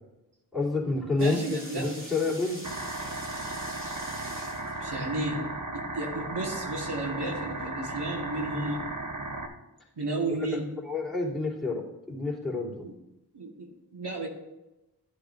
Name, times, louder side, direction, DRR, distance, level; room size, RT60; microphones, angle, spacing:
voice 1, 0.5-2.6 10.8-12.9, left 3 dB, ahead, -7 dB, 3.1 m, -29 dB
sound 1, 1.2-5.0, equal, 30° right, 2.7 m, -44 dB
voice 2, 1.2-2.5 4.8-5.5 5.7-8.9 10.0-10.7 12.8-12.9 13.3-14.3, right 2 dB, 85° right, 0 dB, 1.7 m, -33 dB
sound 2, 2.6-9.5, right 2 dB, 50° right, 1.1 m, -36 dB
13.5 x 8.2 x 2.6 m, 0.96 s
wide cardioid pair, 40°, 40 cm